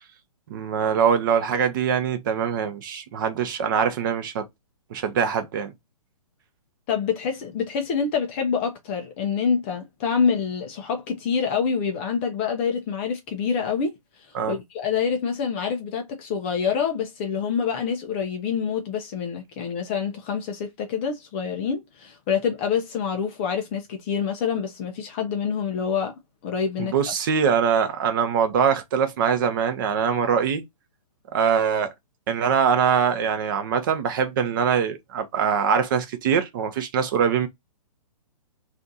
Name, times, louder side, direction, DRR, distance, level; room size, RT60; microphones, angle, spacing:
voice 1, 0.5-4.5 4.9-5.7 14.3-14.6 26.8-30.6 31.3-31.9 32.3-37.5, right 7 dB, 35° right, 0.6 m, -23 dB
voice 2, 6.9-14.0 14.5-26.9, left 6 dB, 20° left, 0.4 m, -26 dB
2.5 x 2.4 x 3.8 m
hypercardioid pair, 155°, 19 cm